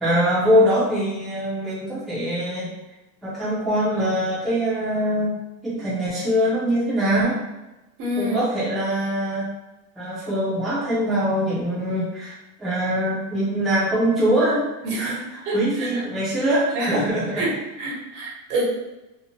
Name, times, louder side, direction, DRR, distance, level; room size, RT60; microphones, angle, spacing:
voice 1, 0.0-2.7 3.2-5.3 5.6-7.4 8.2-9.5 9.9-14.7 15.0-17.5, equal, ahead, -11 dB, 0.4 m, -23 dB
voice 2, 8.0-8.4 14.8-15.2 15.4-16.0 16.7-17.0 17.3-17.5 17.8-18.6, right 1 dB, 75° right, -4 dB, 1.1 m, -27 dB
2.7 x 2.0 x 2.8 m, 1.0 s
cardioid pair, 160°, 45 cm